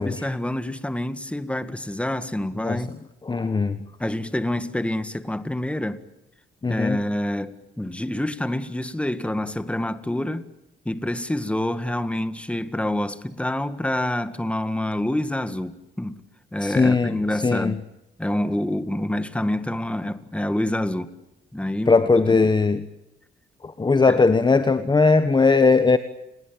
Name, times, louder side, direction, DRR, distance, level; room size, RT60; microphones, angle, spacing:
voice 1, 0.0-2.9 4.0-6.0 6.7-10.5 10.9-16.2 16.5-17.8 18.2-21.1 21.5-22.5 24.1-24.2, left 1 dB, 5° left, 1.9 m, -27 dB
voice 2, 3.3-3.8 6.6-7.0 16.6-17.2 17.4-17.7 21.9-22.8 23.6-26.0, left 4 dB, 20° left, 1.3 m, -19 dB
29.5 x 21.0 x 8.9 m
cardioid pair, 90°, 20 cm